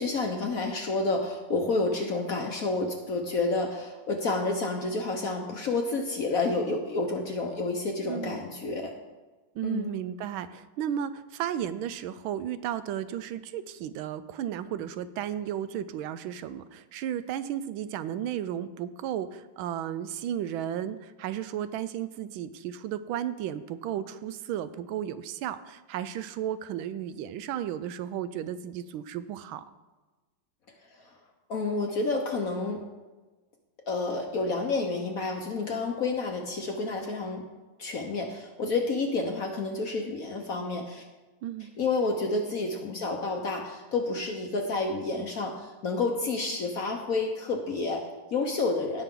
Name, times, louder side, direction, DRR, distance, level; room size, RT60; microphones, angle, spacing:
voice 1, 0.0-8.9 9.6-9.9 30.9-31.1 31.5-32.8 33.9-37.4 37.8-41.0 41.8-49.0, left 3 dB, 55° left, 3 dB, 1.1 m, -29 dB
voice 2, 8.1-8.4 9.5-29.6 41.4-41.7, right 10 dB, 80° right, 14 dB, 1.4 m, -34 dB
17.0 x 5.9 x 3.7 m, 1.2 s
omnidirectional pair, 2.3 m